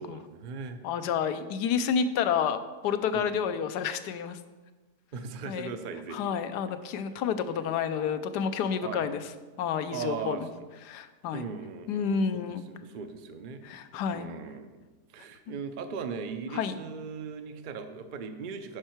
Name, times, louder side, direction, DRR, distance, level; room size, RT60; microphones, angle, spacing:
voice 1, 0.0-0.8 3.1-3.3 5.1-6.4 8.8-9.1 9.9-10.7 11.3-13.6 14.1-14.8 15.1-18.8, right 5 dB, 60° right, 8 dB, 0.5 m, -38 dB
voice 2, 0.8-2.6 2.8-4.4 5.5-5.7 6.1-9.2 9.6-10.5 10.9-11.5 11.9-12.7 13.6-14.3 16.5-16.8, left 7 dB, 85° left, 11 dB, 1.2 m, -29 dB
9.9 x 5.6 x 4.5 m, 1.2 s
omnidirectional pair, 1.7 m